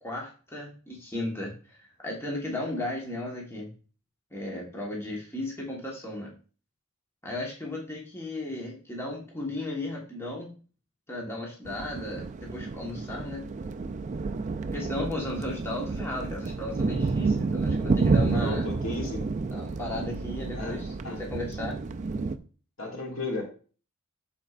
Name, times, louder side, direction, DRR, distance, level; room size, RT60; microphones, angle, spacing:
voice 1, 0.0-3.7 4.3-6.3 7.2-10.5 11.1-13.4 14.7-18.6 19.5-21.7, left 1 dB, 10° left, -2 dB, 1.3 m, -35 dB
sound 1, 11.7-22.4, right 4 dB, 35° right, 0.4 m, -30 dB
voice 2, 18.3-19.2 20.5-21.2 22.8-23.4, left 2 dB, 75° left, 0 dB, 2.2 m, -34 dB
11.5 x 4.3 x 2.5 m, 0.39 s
head